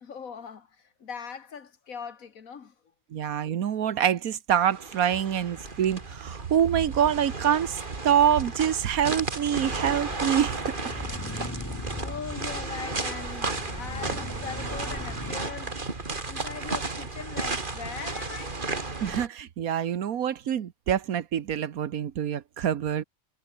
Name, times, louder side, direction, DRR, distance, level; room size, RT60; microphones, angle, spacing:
voice 1, 0.0-2.7 9.6-9.8 12.0-15.8 16.3-19.0, left 6 dB, 75° left, 1.9 m, -40 dB
voice 2, 3.1-11.2 19.0-23.0, right 9 dB, 90° right, 1.5 m, -26 dB
sound 1, 4.7-19.3, right 3 dB, 35° right, 2.5 m, -34 dB
sound 2, 9.5-15.4, left 2 dB, 15° left, 1.3 m, -40 dB
omnidirectional pair, 1.5 m